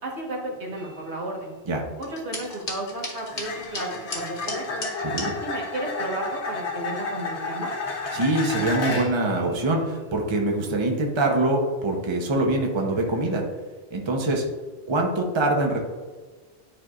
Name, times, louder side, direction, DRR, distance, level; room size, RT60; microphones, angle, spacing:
voice 1, 0.0-1.5 2.0-4.9 5.4-7.7, right 2 dB, 75° right, -2 dB, 1.7 m, -33 dB
sound 1, 0.8-1.0 3.3-9.3 13.0-13.2, left 3 dB, 70° left, 1.2 m, -31 dB
sound 2, 2.0-5.3, left 2 dB, 55° left, 1.5 m, -36 dB
voice 2, 5.0-5.3 8.1-13.4 13.9-14.4 14.9-15.8, right 2 dB, 25° right, 1 dB, 0.8 m, -24 dB
10.5 x 4.6 x 2.5 m, 1.4 s
omnidirectional pair, 1.2 m